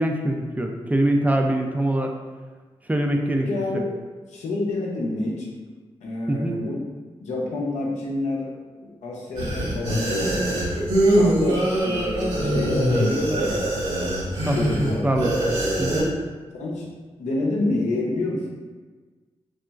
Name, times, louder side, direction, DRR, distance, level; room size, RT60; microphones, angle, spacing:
voice 1, 0.0-2.1 2.9-3.5 3.7-3.8 6.3-6.6 14.5-15.4 15.8-16.2, right 1 dB, 15° right, 3 dB, 0.3 m, -23 dB
voice 2, 3.3-3.9 4.3-5.5 6.0-6.8 7.2-10.3 11.2-13.6 14.5-15.1 16.5-16.9 17.2-18.5, left 2 dB, 80° left, -3 dB, 0.6 m, -28 dB
sound 1, 9.3-16.0, right 1 dB, 65° right, 1.1 m, -23 dB
2.8 x 2.4 x 2.3 m, 1.4 s
supercardioid pair, 40°, 12 cm